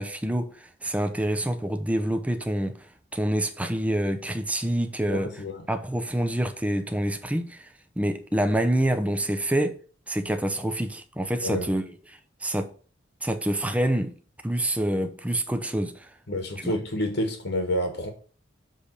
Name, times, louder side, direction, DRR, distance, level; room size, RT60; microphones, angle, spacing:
voice 1, 0.0-2.9 3.1-5.4 5.7-7.7 8.0-9.8 10.1-11.9 12.4-12.7 13.2-14.1 14.4-16.1 16.6-16.8, right 1 dB, 5° right, 0.7 m, -27 dB
voice 2, 5.1-5.7 11.4-11.7 16.3-18.1, left 1 dB, 65° left, 1.4 m, -29 dB
7.7 x 3.4 x 6.5 m
head